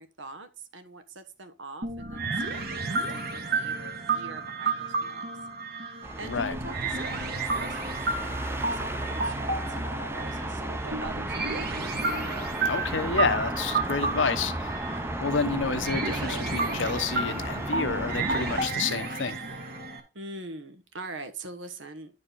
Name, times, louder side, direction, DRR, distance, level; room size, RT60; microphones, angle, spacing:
voice 1, 0.0-5.3 5.7-11.6 20.1-22.2, right 3 dB, 80° right, 1.3 m, -44 dB
sound 1, 1.8-20.0, right 3 dB, 55° right, 1.7 m, -32 dB
sound 2, 6.0-18.7, right 1 dB, 15° right, 0.7 m, -34 dB
voice 2, 6.2-6.5 12.6-14.9 15.2-19.4, left 5 dB, 80° left, 0.9 m, -29 dB
10.5 x 4.9 x 4.1 m
head